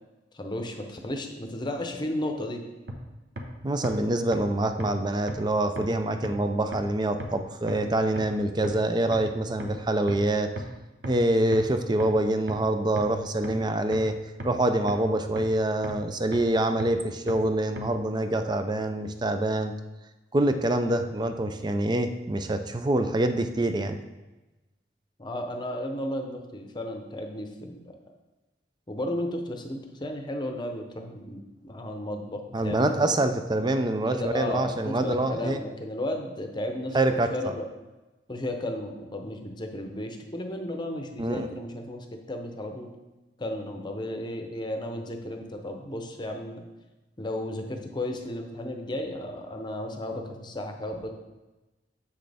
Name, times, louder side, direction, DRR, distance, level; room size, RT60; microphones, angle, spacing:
voice 1, 0.3-2.6 25.2-28.0 28.9-33.3 34.1-37.7 38.3-42.9 43.4-46.6 47.2-51.1, left 1 dB, 25° left, 4 dB, 0.8 m, -34 dB
sound 1, 2.9-3.0 3.4-3.5 3.8-3.9 4.3-4.4 4.8-4.9 5.3-5.4 5.8-5.9 6.2-6.3 6.7-6.8 7.2-7.3 7.7-7.8 8.2-8.3 8.6-8.7 9.1-9.2 9.6-9.7 10.1-10.2 10.6-10.7 11.0-11.1 11.5-11.6 12.0-12.1 12.5-12.6 13.0-13.1 13.4-13.5 13.9-14.0 14.4-14.5 14.9-15.0 15.4-15.5 15.8-15.9 16.3-16.4 16.8-16.9 17.3-17.4 17.8-17.9, right 1 dB, 60° right, 1.0 m, -34 dB
voice 2, 3.6-10.5 11.0-14.1 14.4-19.7 20.3-24.0 32.5-35.6 36.9-37.3 41.2-41.5, right 1 dB, 25° right, 8 dB, 0.5 m, -25 dB
7.5 x 6.2 x 3.5 m, 1.1 s
head